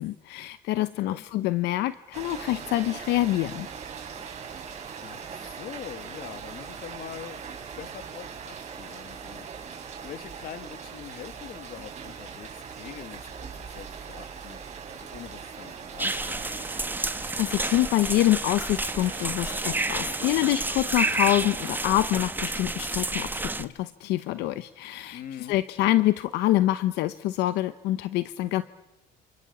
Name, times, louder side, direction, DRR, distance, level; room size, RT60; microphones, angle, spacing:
voice 1, 0.0-3.7 17.4-25.2 25.5-28.6, left 15 dB, 85° left, 13 dB, 0.9 m, -26 dB
voice 2, 0.7-1.3 5.0-9.5 10.0-14.6 14.9-16.7 25.1-25.6, left 9 dB, 60° left, 11 dB, 2.1 m, -43 dB
Rain, 2.1-21.8, right 6 dB, 45° right, 5.5 m, -41 dB
sound 1, 16.0-23.6, right 2 dB, 10° right, 1.3 m, -30 dB
29.0 x 28.0 x 7.2 m, 1.0 s
cardioid pair, 110°, 17 cm